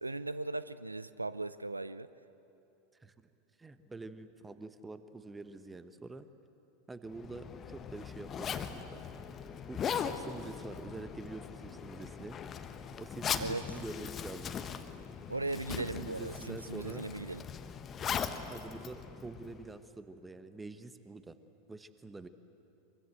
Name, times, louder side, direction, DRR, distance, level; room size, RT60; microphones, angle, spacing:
voice 1, 0.0-2.1 13.4-13.6 15.3-17.4, right 2 dB, 85° right, 16 dB, 0.5 m, -38 dB
voice 2, 3.6-6.3 6.9-9.0 9.7-12.4 13.0-14.6 15.8-17.1 18.5-21.4 21.7-22.3, right 3 dB, 10° right, 12 dB, 1.2 m, -46 dB
Zipper (clothing), 7.1-19.8, left 7 dB, 30° left, 1.2 m, -40 dB
24.5 x 23.5 x 8.0 m, 2.9 s
figure-of-eight pair, 85°, 0 cm